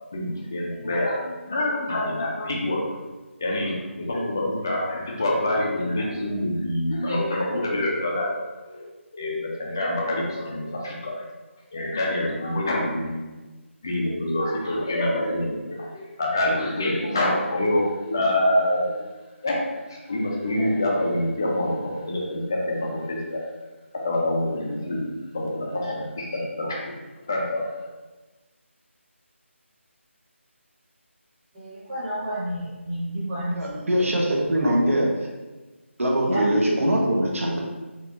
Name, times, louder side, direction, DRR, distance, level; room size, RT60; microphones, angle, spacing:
voice 1, 0.1-3.0 3.4-8.3 8.6-8.8 9.1-11.3 11.7-13.2 13.8-19.0 19.4-19.6 19.9-23.4 24.0-25.1 25.3-26.9 27.3-27.7, left 1 dB, 15° left, -2 dB, 0.3 m, -26 dB
voice 2, 31.5-34.2 34.4-34.9 36.2-36.4, equal, 20° right, -11 dB, 0.8 m, -31 dB
voice 3, 33.6-35.1 36.0-37.6, right 1 dB, 85° right, -1 dB, 0.8 m, -22 dB
4.1 x 2.3 x 2.9 m, 1.2 s
figure-of-eight pair, 175°, 7 cm